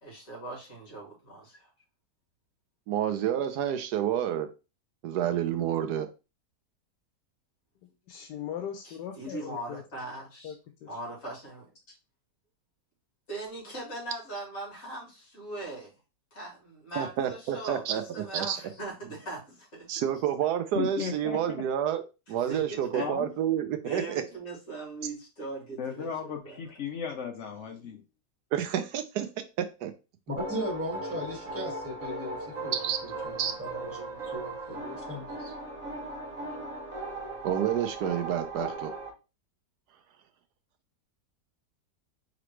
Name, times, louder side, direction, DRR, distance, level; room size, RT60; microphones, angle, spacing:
voice 1, 0.0-1.7 8.8-10.6 10.9-11.9 13.3-15.9 16.3-20.0 22.3-23.1 23.8-26.6, right 2 dB, 50° left, -3 dB, 2.7 m, -40 dB
voice 2, 2.9-4.5 5.0-6.1 17.0-18.0 18.3-18.6 19.9-22.0 22.3-24.2 28.5-29.3 29.6-29.9 32.8-33.0 33.4-33.5 37.4-38.9, right 10 dB, 75° right, 9 dB, 1.1 m, -29 dB
voice 3, 7.8-9.8 10.4-10.5 10.8-10.9, left 9 dB, 85° left, 5 dB, 1.2 m, -39 dB
voice 4, 20.7-21.6 22.9-23.3 25.8-28.0, left 6 dB, 65° left, 4 dB, 0.7 m, -35 dB
voice 5, 30.3-32.7 33.0-35.5, equal, 10° right, -1 dB, 1.5 m, -37 dB
sound 1, 30.4-39.1, right 2 dB, 55° right, 1.3 m, -38 dB
5.0 x 3.0 x 3.1 m, 0.30 s
omnidirectional pair, 1.8 m